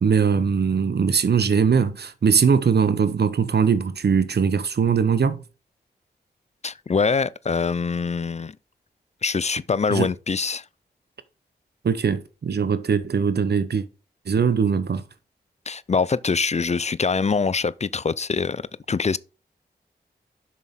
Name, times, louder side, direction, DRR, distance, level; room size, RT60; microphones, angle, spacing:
voice 1, 0.0-5.4 9.9-10.1 11.8-13.9 14.2-15.0, right 6 dB, 65° right, 0.9 m, -21 dB
voice 2, 6.6-8.6 9.2-10.6 15.7-19.2, left 5 dB, 40° left, 0.5 m, -24 dB
7.1 x 6.3 x 3.7 m
cardioid pair, 40°, 18 cm